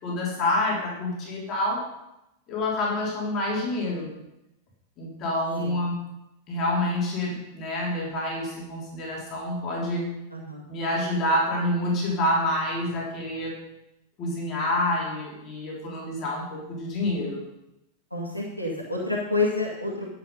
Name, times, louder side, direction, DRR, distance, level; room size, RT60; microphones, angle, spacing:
voice 1, 0.0-1.9 2.5-4.1 5.0-6.0 6.5-10.1 10.7-13.5 14.2-17.4, left 1 dB, 35° left, -4 dB, 3.5 m, -27 dB
voice 2, 10.3-10.6 18.1-20.1, left 3 dB, 90° left, -3 dB, 2.0 m, -28 dB
11.0 x 7.6 x 5.4 m, 0.89 s
figure-of-eight pair, 90°, 0 cm